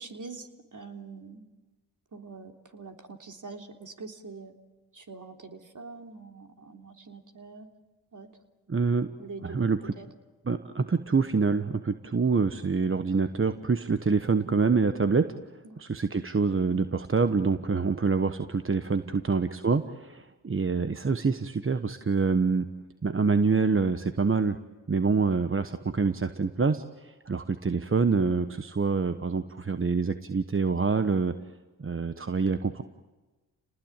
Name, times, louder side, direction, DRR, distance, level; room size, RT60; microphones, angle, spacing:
voice 1, 0.0-1.5 2.1-4.5 4.9-7.7 8.1-8.3 9.2-9.7 10.0-10.1 15.6-15.8 19.1-19.3, right 4 dB, 45° right, 4 dB, 3.5 m, -44 dB
voice 2, 8.7-9.1 9.4-9.9 10.4-15.3 15.8-22.6 23.0-24.6 24.9-31.3 31.8-32.8, right 4 dB, 30° right, 10 dB, 1.2 m, -26 dB
29.0 x 19.5 x 9.1 m, 1.2 s
supercardioid pair, 50°, 41 cm